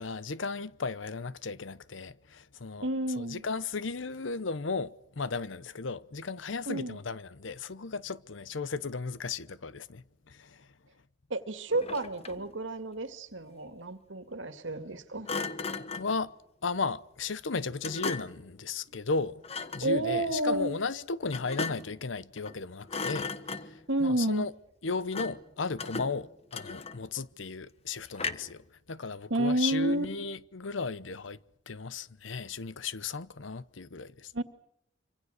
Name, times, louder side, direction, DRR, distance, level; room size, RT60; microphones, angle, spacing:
voice 1, 0.0-2.9 3.2-10.6 15.9-16.3 16.6-19.4 19.7-23.3 24.0-24.5 24.8-28.6 28.9-31.4 31.7-34.3, left 4 dB, 85° left, 0.9 m, -35 dB
voice 2, 2.8-3.4 6.7-7.0 11.3-15.3 19.8-20.7 23.9-24.5 29.3-30.1 34.3-34.4, right 1 dB, 90° right, 2.1 m, -30 dB
Thump thud, 11.7-12.5 15.3-16.2 17.8-18.5 19.4-19.9 21.3-22.0 22.4-22.6 22.9-23.9 25.1-25.5 25.8-27.2 28.2-28.6, left 4 dB, 35° left, 1.3 m, -37 dB
26.0 x 26.0 x 6.6 m
head